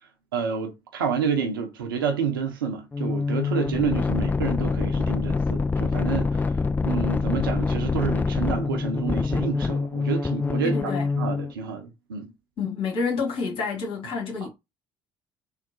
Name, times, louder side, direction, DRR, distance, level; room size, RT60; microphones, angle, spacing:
voice 1, 0.3-6.5 6.8-12.3, right 6 dB, 75° right, 0.6 m, -29 dB
sound 1, 2.9-11.5, left 4 dB, 15° left, 0.3 m, -25 dB
voice 2, 10.6-11.1 12.6-14.5, left 5 dB, 50° left, 1.6 m, -28 dB
3.7 x 2.1 x 3.9 m
figure-of-eight pair, 50°, 12 cm